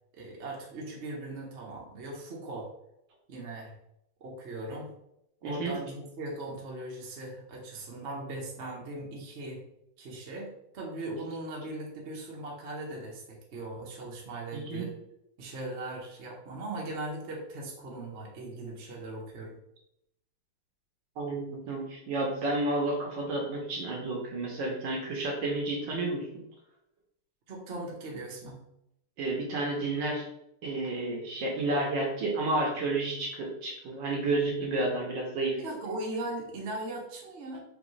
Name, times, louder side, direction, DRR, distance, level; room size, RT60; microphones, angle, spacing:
voice 1, 0.1-2.7 3.3-3.7 4.2-4.9 5.4-9.6 10.0-14.9 15.4-19.5 27.5-28.6 35.6-37.6, right 2 dB, 45° right, -2 dB, 1.0 m, -39 dB
voice 2, 5.4-5.7 14.5-14.9 21.2-26.3 29.2-30.2 30.6-35.6, right 2 dB, 65° right, -1 dB, 1.5 m, -31 dB
5.0 x 3.1 x 3.2 m, 0.80 s
omnidirectional pair, 2.3 m